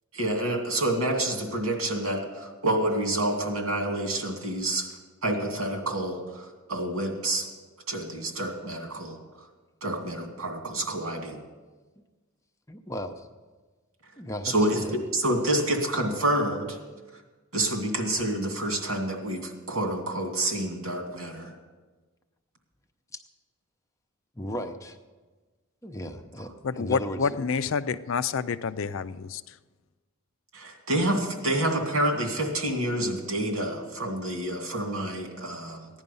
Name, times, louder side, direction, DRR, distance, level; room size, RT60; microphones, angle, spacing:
voice 1, 0.1-4.9 5.2-7.5 7.9-9.2 9.8-11.4 14.4-16.8 17.5-21.5 30.5-35.9, right 1 dB, 85° right, 2 dB, 2.4 m, -28 dB
voice 2, 12.7-13.3 14.2-14.9 23.1-23.2 24.4-25.0 25.8-26.5 26.8-27.2, equal, 15° left, 5 dB, 0.7 m, -35 dB
voice 3, 26.6-29.6 31.4-31.6, left 5 dB, 65° left, 13 dB, 0.4 m, -29 dB
15.5 x 10.5 x 5.4 m, 1.3 s
head